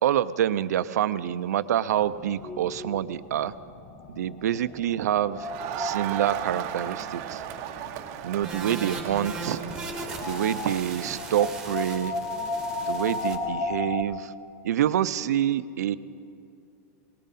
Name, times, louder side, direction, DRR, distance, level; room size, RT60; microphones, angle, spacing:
voice 1, 0.0-3.5 4.1-5.5 5.8-7.4 8.2-9.6 10.2-12.1 12.9-14.3 14.6-16.0, right 11 dB, 85° right, 14 dB, 0.5 m, -26 dB
sound 1, 1.9-14.0, left 3 dB, 35° left, 1.1 m, -36 dB
Crowd, 5.4-12.0, right 10 dB, 40° right, 0.8 m, -37 dB
sound 2, 8.4-13.4, right 3 dB, 5° right, 1.6 m, -38 dB
19.5 x 17.5 x 4.2 m, 2.5 s
supercardioid pair, 160°, 9 cm